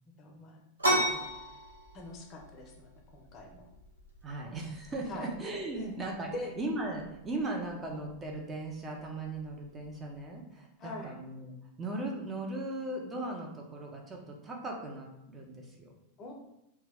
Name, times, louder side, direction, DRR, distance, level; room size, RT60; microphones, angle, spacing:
voice 1, 0.2-0.6 0.9-1.3 1.9-3.6 4.4-4.6 5.1-5.3 5.7-6.0 6.2-6.6 10.8-11.1 16.2-16.3, left 2 dB, 30° left, 0 dB, 0.5 m, -43 dB
sound 1, 0.8-10.2, right 1 dB, 80° right, 0.6 m, -37 dB
voice 2, 4.2-15.9, right 2 dB, 20° right, 0 dB, 0.5 m, -38 dB
2.2 x 2.2 x 3.4 m, 0.88 s
figure-of-eight pair, 90°, 0 cm